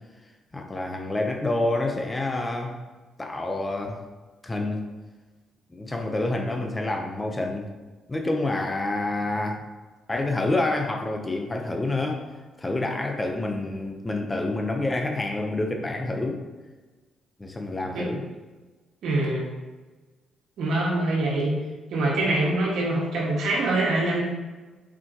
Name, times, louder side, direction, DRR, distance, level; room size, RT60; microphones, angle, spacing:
voice 1, 0.5-2.8 3.2-4.0 4.4-4.8 5.7-7.7 8.1-9.6 10.1-12.2 12.6-16.4 17.4-18.2, left 2 dB, 20° left, 2 dB, 0.9 m, -28 dB
voice 2, 19.0-19.5 20.6-21.5 21.9-24.2, right 2 dB, 75° right, -3 dB, 1.9 m, -24 dB
7.3 x 5.0 x 3.0 m, 1.3 s
cardioid pair, 90°, 0 cm